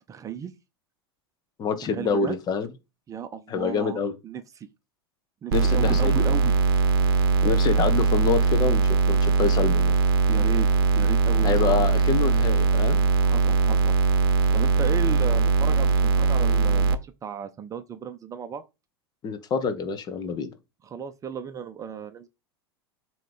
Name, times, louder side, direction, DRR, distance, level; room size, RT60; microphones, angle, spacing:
voice 1, 0.1-0.5 1.9-2.4 3.1-4.7 5.4-6.5 10.3-10.7 10.9-11.8 13.2-13.9 14.5-18.6 20.8-22.3, right 8 dB, 25° right, 0.7 m, -34 dB
voice 2, 1.6-2.7 3.5-4.1 5.5-6.3 7.4-9.9 11.4-13.0 19.2-20.5, left 5 dB, 30° left, 1.3 m, -26 dB
sound 1, 5.5-16.9, right 4 dB, 60° right, 0.8 m, -21 dB
7.5 x 3.2 x 5.2 m
figure-of-eight pair, 85°, 13 cm